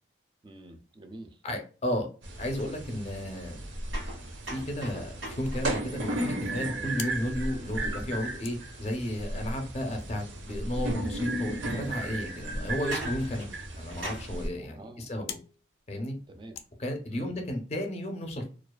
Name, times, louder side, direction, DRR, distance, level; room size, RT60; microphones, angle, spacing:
voice 1, 0.4-1.4 14.6-15.1 16.3-16.6 17.1-17.4, right 1 dB, 25° right, 0.3 m, -47 dB
voice 2, 1.4-2.1 2.4-3.6 4.5-13.5 13.8-15.4 15.9-16.1 16.8-18.5, equal, 35° left, 0.5 m, -33 dB
sound 1, 2.2-14.5, right 1 dB, 70° right, 0.6 m, -35 dB
sound 2, 3.9-7.7 10.5-10.6 11.4-11.5 12.7-14.4, right 1 dB, 90° right, 1.1 m, -42 dB
sound 3, 7.0-17.5, left 8 dB, 90° left, 0.4 m, -50 dB
2.4 x 2.3 x 2.2 m
head